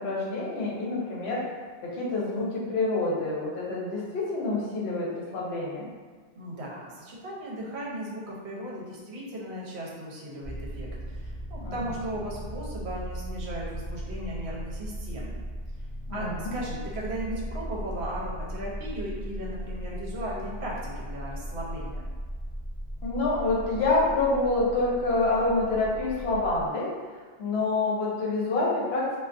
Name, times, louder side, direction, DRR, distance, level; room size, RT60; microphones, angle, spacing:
voice 1, 0.0-1.4 1.8-5.9 11.6-11.8 16.1-16.5 23.0-26.9 27.4-29.1, left 2 dB, 65° left, -4 dB, 0.8 m, -27 dB
voice 2, 6.4-15.4 16.1-22.1, right 1 dB, 70° right, -4 dB, 0.8 m, -36 dB
sound 1, 10.4-26.7, equal, 40° right, 1.0 m, -37 dB
2.3 x 2.2 x 2.4 m, 1.4 s
omnidirectional pair, 1.2 m